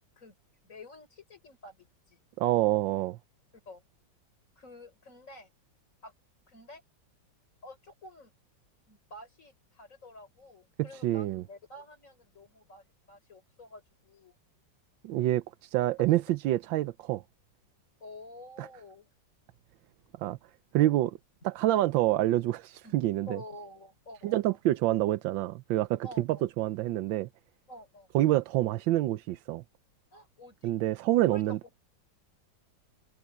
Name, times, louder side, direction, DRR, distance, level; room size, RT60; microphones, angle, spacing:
voice 1, 0.6-2.2 3.7-3.8 4.6-5.5 6.0-6.1 6.5-6.8 7.6-8.3 8.9-14.3 18.0-19.1 20.8-21.0 21.7-21.8 22.8-23.0 23.3-24.6 26.0-26.4 27.7-28.1 30.1-30.7 31.2-31.6, left 1 dB, 40° left, 5.9 m, -49 dB
voice 2, 2.4-3.2 10.8-11.4 15.0-17.2 18.6-18.7 20.2-20.4 20.7-21.1 21.4-23.4 24.2-27.3 28.1-29.6 30.6-31.6, right 15 dB, 85° right, 1.4 m, -27 dB
omnidirectional pair, 2.0 m